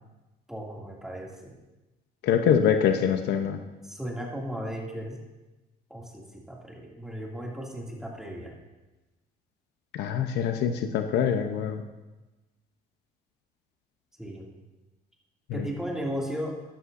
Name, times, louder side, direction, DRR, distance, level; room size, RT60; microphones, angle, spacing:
voice 1, 0.5-1.6 3.8-5.2 5.9-8.5 14.2-14.5 15.5-16.6, equal, 5° right, -3 dB, 2.5 m, -35 dB
voice 2, 2.2-3.6 9.9-11.8 15.5-15.7, left 8 dB, 80° left, 7 dB, 0.8 m, -24 dB
13.5 x 11.0 x 2.7 m, 1.1 s
cardioid pair, 110°, 17 cm